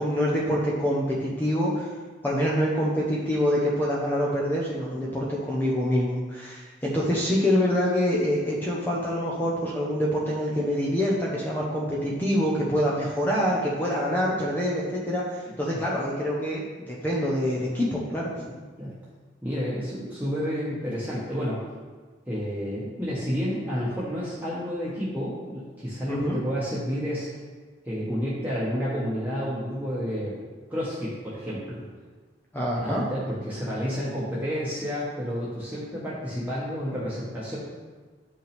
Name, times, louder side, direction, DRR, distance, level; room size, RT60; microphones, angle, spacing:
voice 1, 0.0-1.9 2.2-16.6 16.9-18.4 26.1-26.4 32.5-33.0, equal, 10° left, -5 dB, 1.0 m, -26 dB
voice 2, 19.4-21.6 22.3-27.3 27.8-30.3 30.7-31.8 32.7-37.6, equal, 10° right, -9 dB, 1.4 m, -30 dB
9.4 x 5.4 x 3.5 m, 1.4 s
head